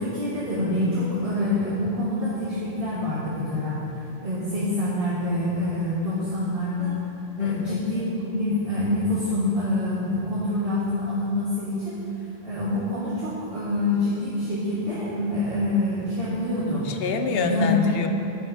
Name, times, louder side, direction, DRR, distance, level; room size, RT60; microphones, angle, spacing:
voice 1, 0.0-3.8 4.2-6.9 7.4-12.0 12.4-16.9 17.3-17.9, left 1 dB, 45° right, -9 dB, 1.7 m, -26 dB
voice 2, 7.4-7.8 16.8-18.1, left 6 dB, 60° left, 6 dB, 0.7 m, -26 dB
8.4 x 6.3 x 5.6 m, 2.9 s
omnidirectional pair, 1.3 m